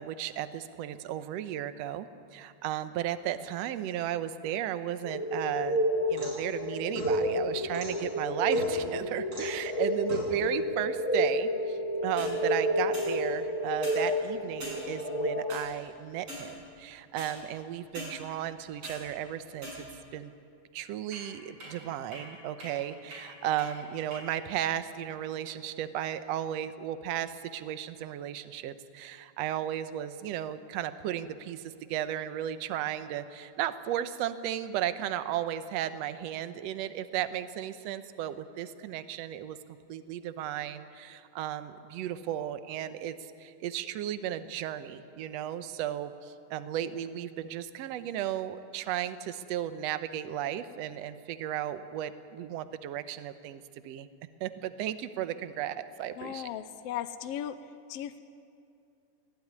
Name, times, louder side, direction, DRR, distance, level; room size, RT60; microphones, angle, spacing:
voice 1, 0.0-5.8 6.1-19.9 20.1-20.3 20.7-39.6 39.9-54.1 54.4-56.5, right 11 dB, 70° right, 12 dB, 1.9 m, -35 dB
sound 1, 5.0-15.5, equal, 10° left, 2.9 m, -30 dB
sound 2, 5.8-6.5 6.9-7.9 8.5-8.9 9.3-9.6 10.1-10.3 12.0-12.3 12.9-13.1 13.7-14.0 14.6-14.8 15.5-15.6 16.2-16.5 17.2-17.3 17.9-18.1 18.6-19.0 19.6-20.1 21.1-21.2 21.6-21.7 22.1-22.2 22.6-22.7 23.1-23.2 23.6-23.7 24.1-24.2, right 1 dB, 45° right, 8.5 m, -41 dB
voice 2, 56.2-57.5 57.9-58.2, left 11 dB, 75° left, 9 dB, 1.5 m, -36 dB
24.0 x 17.5 x 9.6 m, 2.5 s
omnidirectional pair, 3.4 m